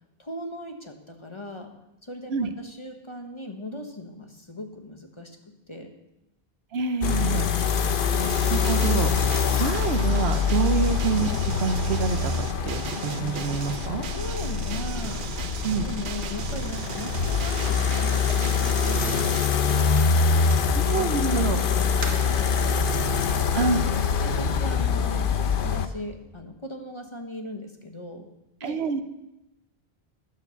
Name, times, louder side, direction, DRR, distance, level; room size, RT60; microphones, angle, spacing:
voice 1, 0.2-1.7 2.0-5.9 7.4-7.9 10.5-10.6 14.1-15.3 15.8-20.5 20.9-21.2 21.7-22.9 23.3-25.3 25.6-28.3 28.6-29.0, left 1 dB, 30° left, 4 dB, 1.2 m, -39 dB
voice 2, 6.7-7.5 8.5-14.0 15.6-15.8 20.7-21.6 23.5-23.8 28.6-29.0, right 5 dB, 75° right, 9 dB, 1.0 m, -27 dB
sound 1, 7.0-25.9, left 6 dB, 60° left, 0.9 m, -24 dB
sound 2, 8.2-19.5, right 9 dB, 60° right, 0.7 m, -38 dB
sound 3, 16.8-21.1 21.7-22.4, right 2 dB, 35° right, 1.5 m, -40 dB
11.5 x 7.0 x 6.9 m, 0.92 s
omnidirectional pair, 1.1 m